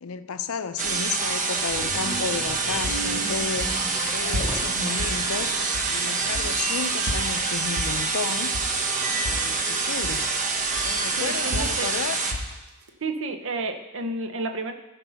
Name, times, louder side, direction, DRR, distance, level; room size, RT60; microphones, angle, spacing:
voice 1, 0.0-3.8 4.1-5.6 5.9-8.6 9.2-10.3 10.7-12.2, left 5 dB, 70° left, 11 dB, 0.5 m, -32 dB
sound 1, 0.8-12.3, right 4 dB, 35° right, 1.0 m, -26 dB
sound 2, 2.2-6.0 6.3-7.5 8.8-8.9 10.0-10.3 10.9-11.7, left 2 dB, 20° left, 0.7 m, -42 dB
sound 3, 2.6-6.0 6.3-9.0 9.2-10.3 10.8-12.9, left 1 dB, 85° right, 1.2 m, -33 dB
voice 2, 11.2-11.9 13.0-14.7, right 3 dB, 60° right, 6 dB, 0.9 m, -31 dB
14.5 x 5.4 x 5.6 m, 1.0 s
head